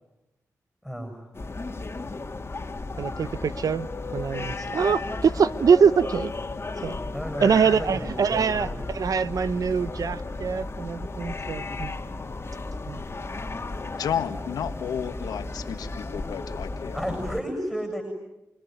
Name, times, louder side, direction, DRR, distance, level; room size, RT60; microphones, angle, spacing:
voice 1, 0.8-1.2 7.1-8.8 16.9-18.0, equal, 5° right, 5 dB, 7.7 m, -33 dB
sound 1, 1.3-17.4, left 3 dB, 40° left, 2.3 m, -34 dB
voice 2, 3.0-3.9 4.1-6.3 6.8-7.0 7.4-11.9 12.9-13.0, right 6 dB, 65° right, 15 dB, 1.0 m, -23 dB
voice 3, 14.0-17.0, left 8 dB, 85° left, 8 dB, 1.7 m, -32 dB
29.0 x 21.5 x 9.5 m, 0.97 s
supercardioid pair, 50°, 7 cm